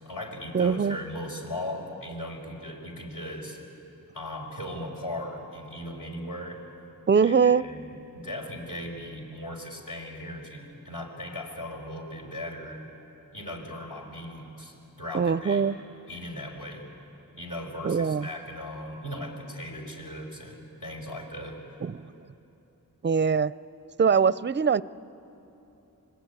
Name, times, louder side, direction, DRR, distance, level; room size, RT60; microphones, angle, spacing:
voice 1, 0.0-3.6 4.1-6.6 7.2-12.8 13.3-15.7 16.1-16.9 17.3-21.8, left 1 dB, 65° left, 0 dB, 5.1 m, -38 dB
voice 2, 0.5-1.0 7.1-7.6 15.1-15.8 17.8-18.2 21.8-22.0 23.0-23.5 24.0-24.8, right 6 dB, 30° right, 18 dB, 0.5 m, -22 dB
25.5 x 20.0 x 9.6 m, 3.0 s
cardioid pair, 45°, 35 cm